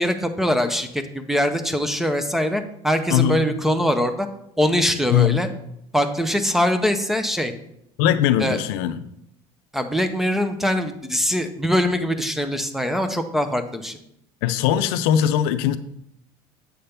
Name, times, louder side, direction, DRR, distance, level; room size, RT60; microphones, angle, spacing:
voice 1, 0.0-4.3 4.6-5.5 5.9-7.5 8.4-8.6 9.7-14.0, equal, 5° right, 8 dB, 0.5 m, -22 dB
voice 2, 3.1-3.4 5.1-5.5 8.0-9.0 14.4-15.8, left 10 dB, 85° left, 12 dB, 0.5 m, -20 dB
7.7 x 3.3 x 5.7 m, 0.76 s
cardioid pair, 130°, 12 cm